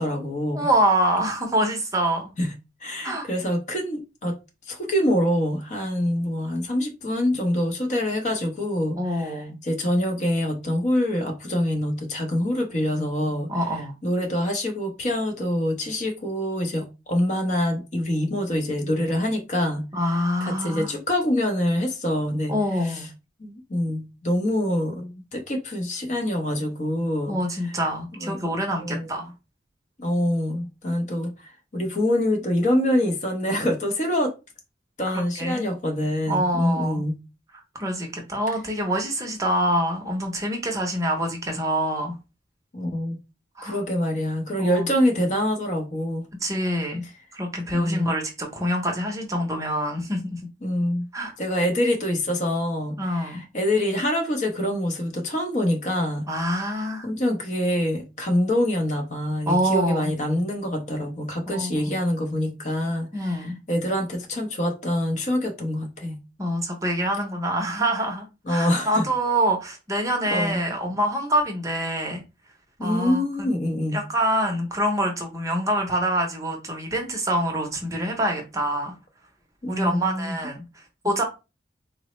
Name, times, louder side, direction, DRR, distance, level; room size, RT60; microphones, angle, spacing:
voice 1, 0.0-0.7 2.4-2.5 2.8-4.4 4.7-13.5 14.0-19.9 20.4-22.5 22.8-23.1 23.4-27.4 28.2-28.4 28.8-29.1 30.0-34.3 35.0-37.2 42.7-43.2 43.6-46.3 47.7-48.1 50.6-51.1 51.4-56.2 57.0-66.2 68.5-69.1 70.3-70.6 72.8-74.0 79.6-80.4, left 1 dB, 40° left, 0.6 m, -25 dB
voice 2, 0.5-2.3 3.0-3.3 9.0-9.5 13.5-13.9 19.9-20.9 22.5-23.1 27.3-29.3 35.1-35.7 36.3-37.0 37.8-42.2 43.6-43.8 44.6-44.8 46.4-47.0 47.3-50.4 51.1-51.3 53.0-53.4 56.3-57.1 59.5-60.1 61.5-61.8 63.1-63.6 66.4-72.2 72.8-73.5 73.9-79.0 79.7-81.2, right 1 dB, 20° right, 0.6 m, -25 dB
3.9 x 2.0 x 3.0 m
head